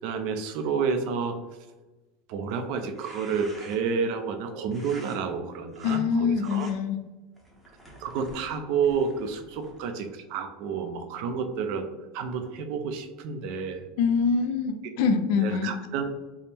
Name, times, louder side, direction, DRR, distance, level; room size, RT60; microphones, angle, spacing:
voice 1, 0.0-1.4 2.3-6.7 8.0-11.9 12.1-13.8 15.4-16.1, right 6 dB, 55° right, 6 dB, 0.4 m, -30 dB
sound 1, 2.8-4.0 4.7-5.2 5.7-6.0 6.4-6.7 7.3-9.9, equal, 5° right, 0.7 m, -49 dB
voice 2, 5.8-7.0 14.0-15.7, left 5 dB, 60° left, 7 dB, 0.4 m, -24 dB
3.5 x 2.1 x 4.2 m, 1.1 s
supercardioid pair, 160°, 0 cm